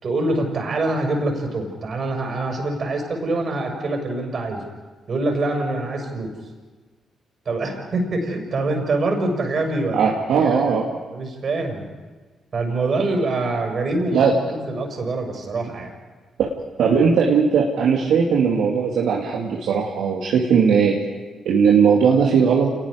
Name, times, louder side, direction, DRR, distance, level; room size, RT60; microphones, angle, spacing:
voice 1, 0.0-4.6 5.1-6.3 7.5-10.6 11.1-11.8 12.5-14.2 14.5-15.9, right 2 dB, 55° right, 3 dB, 5.8 m, -25 dB
voice 2, 9.9-10.8 14.1-14.3 16.4-16.5 16.8-20.9 21.4-22.7, right 6 dB, 75° right, -2 dB, 2.3 m, -18 dB
28.0 x 20.0 x 5.1 m, 1.3 s
hypercardioid pair, 45°, 0 cm